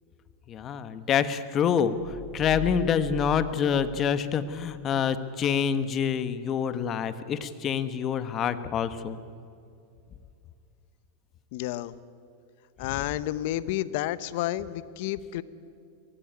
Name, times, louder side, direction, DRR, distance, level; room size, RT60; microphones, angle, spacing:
voice 1, 0.5-9.2, left 7 dB, 35° left, 12 dB, 1.4 m, -27 dB
sound 1, 1.9-4.6, right 4 dB, 90° right, 7.0 m, -40 dB
voice 2, 11.5-11.9 12.8-15.4, left 14 dB, 65° left, 16 dB, 1.0 m, -30 dB
23.0 x 18.5 x 9.4 m, 2.4 s
supercardioid pair, 125°, 0 cm